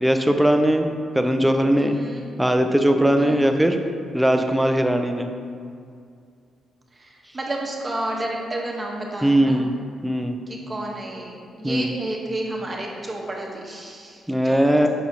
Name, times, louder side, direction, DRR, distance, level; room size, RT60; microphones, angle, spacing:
voice 1, 0.0-2.0 2.4-3.8 4.1-5.3 9.2-9.7 10.0-10.4 11.6-11.9 14.3-14.9, right 1 dB, 5° right, 6 dB, 0.4 m, -19 dB
voice 2, 1.9-2.2 3.1-3.5 6.9-9.6 10.5-14.9, right 1 dB, 25° right, -2 dB, 1.0 m, -31 dB
6.1 x 5.7 x 2.7 m, 2.3 s
cardioid pair, 100°, 0 cm